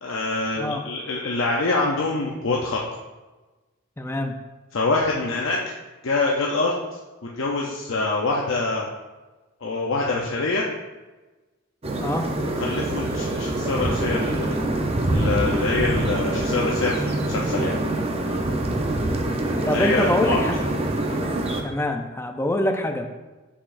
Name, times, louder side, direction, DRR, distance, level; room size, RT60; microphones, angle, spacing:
voice 1, 0.0-2.8 4.7-5.6 6.0-6.7 7.3-8.9 9.6-10.6 12.4-14.5 15.1-17.8 19.6-20.4, left 3 dB, 70° left, -2 dB, 0.7 m, -25 dB
voice 2, 4.0-4.4 12.0-12.2 19.7-20.6 21.2-21.3 21.6-23.1, left 1 dB, 10° left, 5 dB, 0.5 m, -25 dB
sound 1, 11.8-21.6, right 1 dB, 30° right, 0.7 m, -25 dB
7.2 x 6.8 x 2.6 m, 1.2 s
head